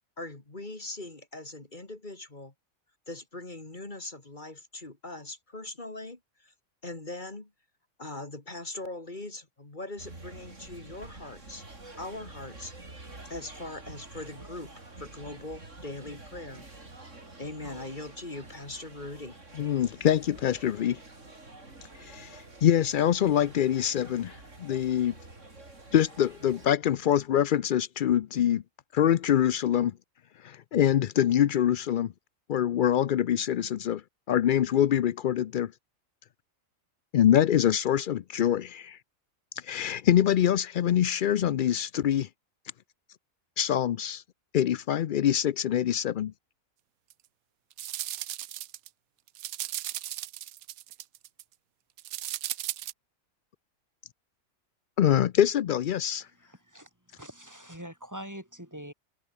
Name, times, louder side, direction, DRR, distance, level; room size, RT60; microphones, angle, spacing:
voice 1, 0.2-2.5 3.1-6.5 6.8-7.5 8.0-11.6 12.0-14.7 15.0-16.7 17.4-19.4, left 2 dB, 35° left, 2.8 m, -41 dB
sound 1, 10.0-26.7, right 2 dB, 60° right, 4.9 m, -48 dB
voice 2, 19.6-21.0 22.0-25.1 25.9-28.6 28.9-29.9 30.4-32.1 32.5-34.0 34.3-35.7 37.1-39.0 39.6-42.3 43.6-44.2 44.5-46.3 55.0-56.3, left 10 dB, 70° left, 0.4 m, -25 dB
sound 2, 47.1-47.2 47.7-48.9 49.3-51.4 52.0-52.9, right 14 dB, 90° right, 1.1 m, -36 dB
voice 3, 56.5-58.9, equal, 10° right, 3.6 m, -44 dB
omnidirectional pair, 1.5 m